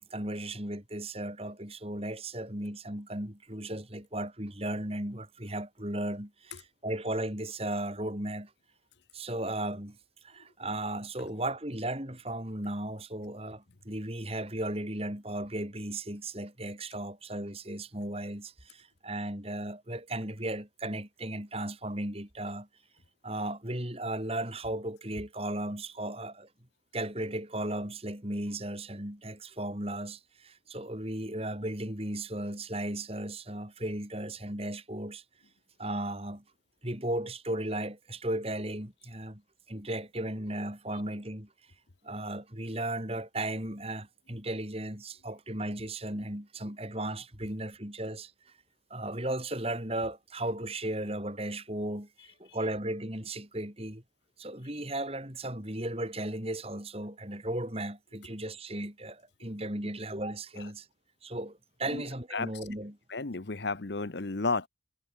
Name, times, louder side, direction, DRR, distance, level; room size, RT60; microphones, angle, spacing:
voice 1, 0.0-8.5 9.1-10.0 10.2-22.7 23.2-26.5 26.9-35.2 35.8-36.4 36.8-39.4 39.7-41.5 42.0-48.5 48.9-54.0 54.4-60.9 61.2-62.9, right 1 dB, 30° right, 4.7 m, -36 dB
voice 2, 63.1-64.7, left 3 dB, 65° left, 1.1 m, -32 dB
head